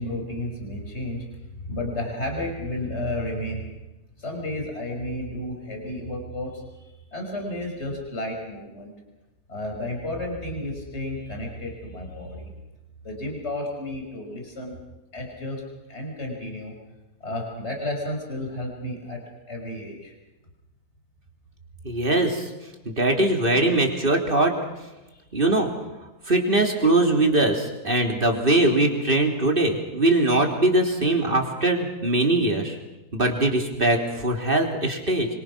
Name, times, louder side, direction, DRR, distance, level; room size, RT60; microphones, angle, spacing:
voice 1, 0.0-3.7 4.2-8.9 9.5-12.5 13.0-14.8 15.1-15.6 15.9-16.7 17.2-19.2 19.5-20.1 25.1-25.2, left 1 dB, 45° left, 0 dB, 6.1 m, -32 dB
voice 2, 21.8-22.5 22.9-24.5 25.3-25.7 26.3-32.8 33.1-35.3, right 2 dB, 35° right, 2 dB, 3.6 m, -21 dB
27.0 x 25.0 x 6.2 m, 1.0 s
omnidirectional pair, 1.6 m